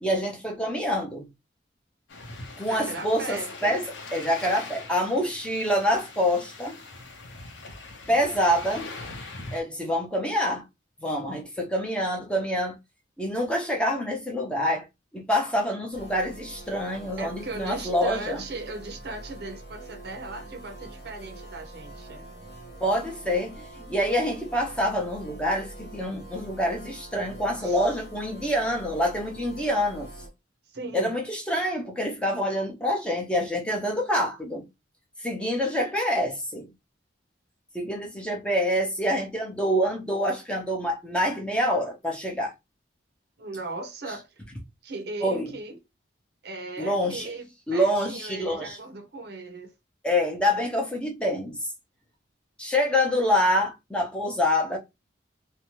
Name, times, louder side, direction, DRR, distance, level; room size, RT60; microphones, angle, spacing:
voice 1, 0.0-1.3 2.6-3.8 4.1-6.8 8.1-8.9 9.5-10.6 11.0-12.8 13.2-14.8 15.1-18.4 22.8-30.1 30.9-34.7 35.2-36.7 37.7-42.5 45.2-45.5 46.8-47.3 47.7-48.8 50.0-51.6 52.6-54.8, equal, 5° left, 0.6 m, -26 dB
sound 1, 2.1-9.6, left 3 dB, 80° left, 0.7 m, -41 dB
voice 2, 2.7-3.7 17.2-22.3 27.6-27.9 30.7-31.2 43.4-44.4 44.8-45.8 46.4-49.7, right 3 dB, 55° right, 0.6 m, -38 dB
sound 2, 15.9-30.3, right 1 dB, 55° left, 0.9 m, -44 dB
2.6 x 2.2 x 3.0 m
head